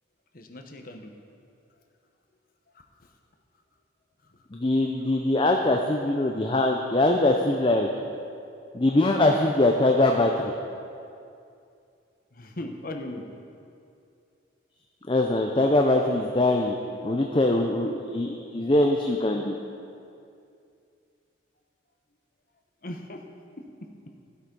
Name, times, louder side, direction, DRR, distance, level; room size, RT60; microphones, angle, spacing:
voice 1, 0.3-1.1 2.7-2.8 6.3-6.4 12.3-13.2 22.8-23.2 23.6-23.9, left 1 dB, 45° left, 4 dB, 1.0 m, -38 dB
voice 2, 4.5-7.9 8.7-10.5 15.1-16.8 17.0-19.6, left 2 dB, 25° left, 2 dB, 0.5 m, -22 dB
14.5 x 8.2 x 5.4 m, 2.5 s
head